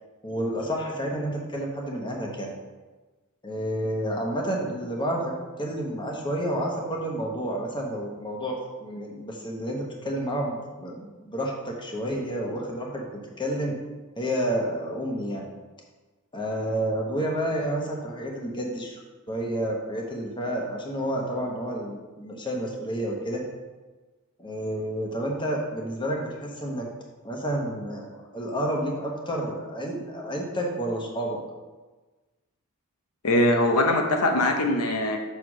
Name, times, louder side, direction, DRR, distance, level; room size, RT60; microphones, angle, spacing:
voice 1, 0.2-2.5 3.4-8.5 8.8-13.7 14.2-15.5 16.3-19.0 19.3-23.4 24.4-26.8 27.2-28.1 28.3-31.4, right 1 dB, 20° left, 0 dB, 1.0 m, -30 dB
voice 2, 33.2-35.2, left 1 dB, 80° left, 4 dB, 0.7 m, -22 dB
6.2 x 3.4 x 6.0 m, 1.3 s
head